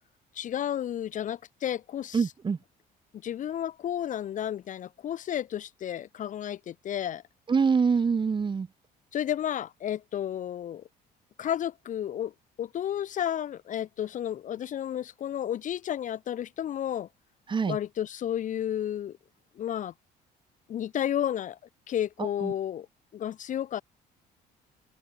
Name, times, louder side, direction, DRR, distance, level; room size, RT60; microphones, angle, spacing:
voice 1, 0.3-2.2 3.2-7.2 9.1-10.8 11.4-12.3 12.6-17.1 17.7-19.2 19.6-19.9 20.7-21.6 21.9-22.9 23.1-23.8, left 10 dB, 50° left, 0.7 m, -32 dB
voice 2, 2.1-2.6 7.5-8.7 17.5-17.8 22.2-22.5, right 5 dB, 30° right, 1.5 m, -25 dB
open air
cardioid pair, 110°, 17 cm